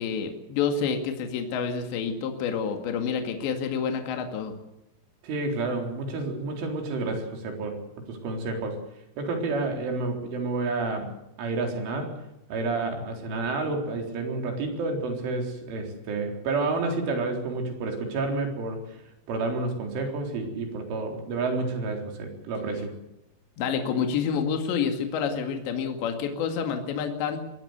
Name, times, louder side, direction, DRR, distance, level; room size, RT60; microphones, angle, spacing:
voice 1, 0.0-4.5 23.6-27.4, left 6 dB, 70° left, 5 dB, 4.2 m, -28 dB
voice 2, 5.2-7.8 8.1-8.8 9.2-11.1 11.4-12.2 12.5-18.8 19.3-22.9, right 3 dB, 80° right, 3 dB, 6.5 m, -29 dB
23.0 x 18.5 x 8.1 m, 0.88 s
omnidirectional pair, 5.5 m